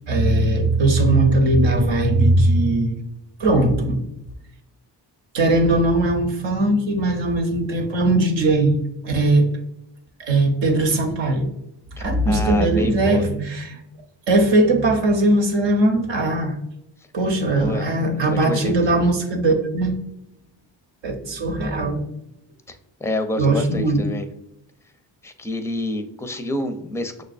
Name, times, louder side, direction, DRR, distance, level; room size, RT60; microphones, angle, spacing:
voice 1, 0.1-3.0 3.4-4.0 5.3-8.8 9.0-9.5 10.2-11.5 12.0-13.8 14.3-16.5 17.1-20.0 21.0-22.0 23.4-24.0, right 2 dB, 75° right, 3 dB, 0.9 m, -19 dB
voice 2, 12.0-13.2 17.5-17.9 18.2-18.7 22.7-22.8 23.0-24.3 25.2-27.2, left 1 dB, 5° left, 8 dB, 0.4 m, -28 dB
6.1 x 2.2 x 2.4 m, 0.82 s
supercardioid pair, 50°, 45 cm